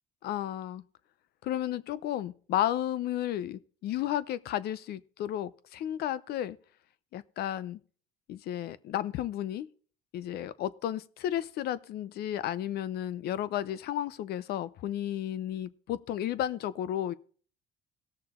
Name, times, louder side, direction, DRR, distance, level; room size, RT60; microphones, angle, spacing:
voice 1, 0.2-0.8 1.4-6.6 7.1-7.8 8.3-9.7 10.1-17.1, left 12 dB, 70° left, 0.6 m, -33 dB
18.0 x 6.7 x 3.7 m
cardioid pair, 110°, 17 cm